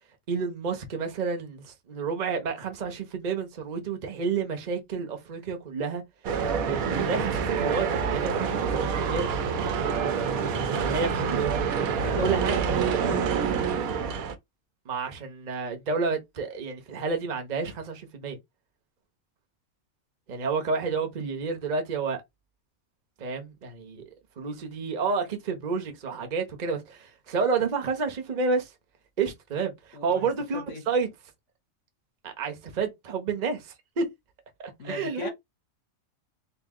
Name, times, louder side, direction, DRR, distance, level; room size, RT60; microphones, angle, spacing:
voice 1, 0.3-6.0 6.6-9.4 10.8-11.5 12.2-12.6 14.9-18.4 20.3-22.2 23.2-24.0 24.4-28.7 29.2-31.1 32.2-34.1 34.6-35.3, right 5 dB, 35° right, 0.9 m, -30 dB
sound 1, 6.2-14.3, right 6 dB, 90° right, 1.2 m, -27 dB
voice 2, 12.0-13.2 29.9-30.8 34.8-35.3, left 4 dB, 60° left, 1.5 m, -38 dB
4.0 x 2.6 x 3.6 m
omnidirectional pair, 1.4 m